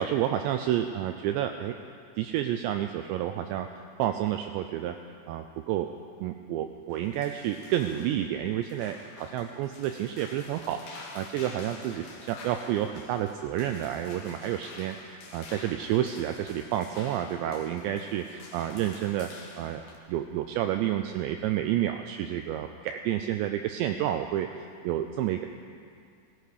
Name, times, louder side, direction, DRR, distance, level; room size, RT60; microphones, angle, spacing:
voice 1, 0.0-1.8 2.2-3.7 4.0-5.0 5.3-5.9 6.2-19.3 19.6-19.8 20.1-25.5, right 11 dB, 85° right, 6 dB, 2.5 m, -30 dB
sound 1, 6.9-20.0, left 3 dB, 65° left, 3.4 m, -48 dB
17.0 x 16.5 x 5.0 m, 2.3 s
omnidirectional pair, 5.6 m